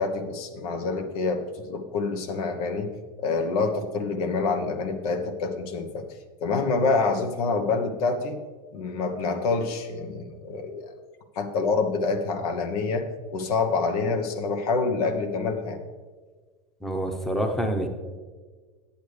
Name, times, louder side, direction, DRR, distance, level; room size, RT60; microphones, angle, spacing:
voice 1, 0.0-2.9 3.2-6.0 6.4-8.4 8.7-10.9 11.4-13.0 13.3-15.8, left 4 dB, 70° left, 6 dB, 1.0 m, -27 dB
voice 2, 16.8-17.9, right 1 dB, ahead, 5 dB, 0.9 m, -27 dB
10.0 x 8.1 x 3.3 m, 1.4 s
hypercardioid pair, 100°, 20 cm